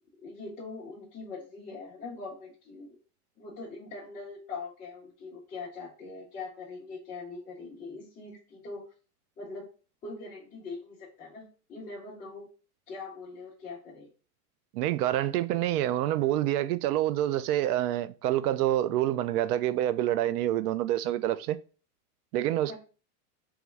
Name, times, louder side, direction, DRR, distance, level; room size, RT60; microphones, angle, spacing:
voice 1, 0.2-2.9 3.4-8.9 9.4-9.7 10.0-12.5 12.9-14.1 22.7-22.8, left 3 dB, 15° left, 0.5 m, -42 dB
voice 2, 14.7-21.6 22.3-22.8, right 13 dB, 75° right, 0.5 m, -27 dB
3.5 x 3.0 x 3.1 m
supercardioid pair, 145°, 47 cm